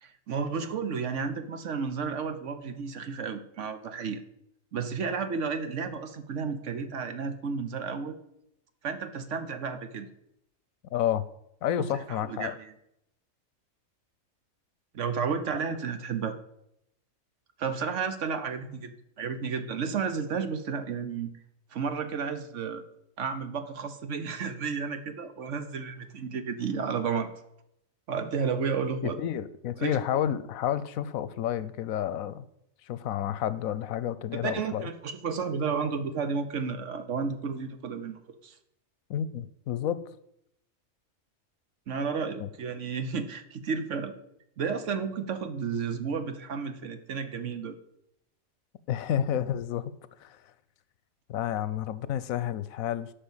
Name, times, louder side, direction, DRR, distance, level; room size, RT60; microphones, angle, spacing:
voice 1, 0.0-4.2 4.7-8.2 8.8-10.1 11.8-12.7 14.9-16.4 17.6-21.3 21.7-22.8 23.2-27.3 28.1-29.2 29.8-30.2 34.3-38.6 41.9-44.1 44.6-47.8, right 5 dB, 65° right, 9 dB, 1.2 m, -32 dB
voice 2, 10.9-11.3 11.6-12.5 29.0-32.4 32.9-34.9 39.1-40.0 42.4-42.5 48.9-49.9 50.2-50.4 51.3-53.1, left 10 dB, 85° left, 16 dB, 1.1 m, -30 dB
10.5 x 5.4 x 7.2 m, 0.79 s
omnidirectional pair, 1.4 m